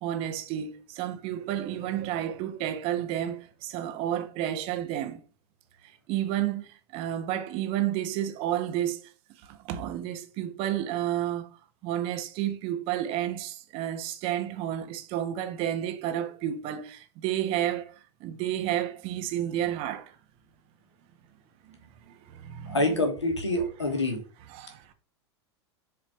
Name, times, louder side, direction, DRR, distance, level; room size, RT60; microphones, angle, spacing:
voice 1, 0.0-5.2 5.8-9.1 9.4-11.5 11.8-17.9 18.2-20.2 21.6-23.0 24.5-24.9, right 11 dB, 40° right, 1.3 m, -31 dB
voice 2, 22.7-24.2, left 2 dB, 80° left, 2.5 m, -26 dB
7.4 x 5.0 x 5.2 m
figure-of-eight pair, 90°, 14 cm